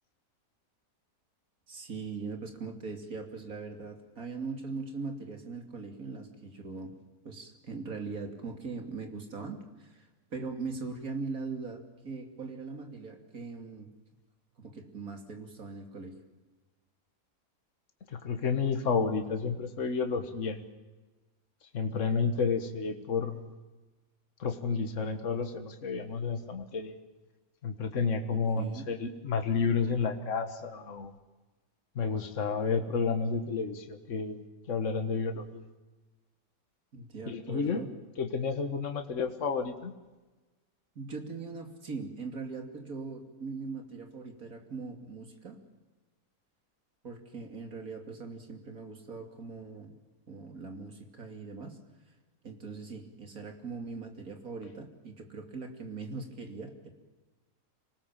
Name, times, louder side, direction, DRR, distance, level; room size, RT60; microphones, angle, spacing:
voice 1, 1.7-6.9 7.2-13.9 14.6-16.2 28.3-28.9 36.9-37.9 40.9-45.6 47.0-50.0 50.3-51.8 52.4-56.9, right 4 dB, 70° right, 4 dB, 3.2 m, -40 dB
voice 2, 18.1-20.6 21.7-23.5 24.4-26.9 27.6-31.1 32.0-34.4 34.7-35.6 37.3-37.8 38.2-39.9, left 5 dB, 55° left, 6 dB, 1.8 m, -31 dB
26.5 x 19.0 x 7.4 m, 1.2 s
omnidirectional pair, 1.6 m